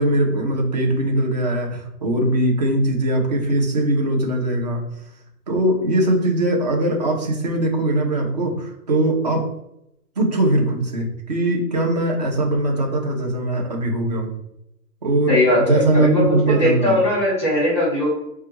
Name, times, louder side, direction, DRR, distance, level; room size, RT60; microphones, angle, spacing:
voice 1, 0.0-4.8 5.5-9.5 10.2-14.3 15.0-17.0, right 1 dB, 30° right, 1 dB, 0.5 m, -21 dB
voice 2, 15.3-18.1, left 1 dB, 5° left, -8 dB, 0.8 m, -19 dB
4.7 x 2.2 x 2.9 m, 0.82 s
hypercardioid pair, 160°, 48 cm